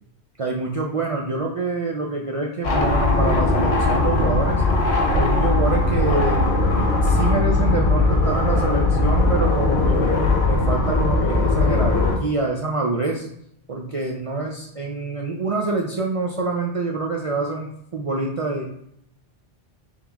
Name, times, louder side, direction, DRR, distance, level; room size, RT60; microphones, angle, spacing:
voice 1, 0.4-4.6 5.1-6.5 7.0-10.1 10.5-13.3 13.7-18.7, right 3 dB, 50° right, -1 dB, 0.4 m, -26 dB
sound 1, 2.6-12.2, left 2 dB, 75° left, 1.1 m, -19 dB
3.6 x 3.0 x 3.4 m, 0.72 s
omnidirectional pair, 1.1 m